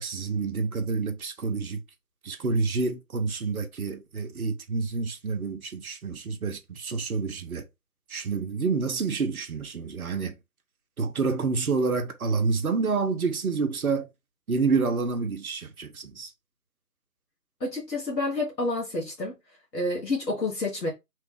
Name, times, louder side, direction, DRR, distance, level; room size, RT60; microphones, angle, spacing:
voice 1, 0.0-1.8 2.2-7.7 8.1-10.4 11.0-14.1 14.5-16.3, right 4 dB, 60° right, 0.7 m, -28 dB
voice 2, 17.6-19.3 19.7-20.9, left 2 dB, 85° left, 1.3 m, -29 dB
3.1 x 2.3 x 3.2 m
figure-of-eight pair, 155°, 49 cm